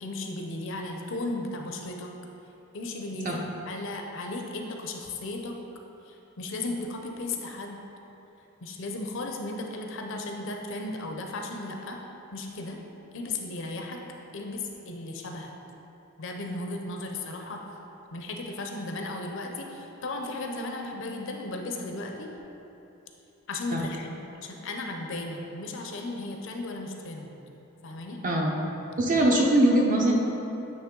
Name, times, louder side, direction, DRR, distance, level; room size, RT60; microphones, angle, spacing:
voice 1, 0.0-2.1 2.7-3.4 3.7-5.5 6.1-7.8 8.6-12.0 12.3-12.8 13.1-14.0 14.3-15.5 16.2-17.6 18.1-22.3 23.5-27.3 27.8-28.2, left 2 dB, 60° left, 2 dB, 0.5 m, -35 dB
voice 2, 29.0-30.1, right 1 dB, 35° right, -1 dB, 0.7 m, -22 dB
8.8 x 3.1 x 3.7 m, 3.0 s
head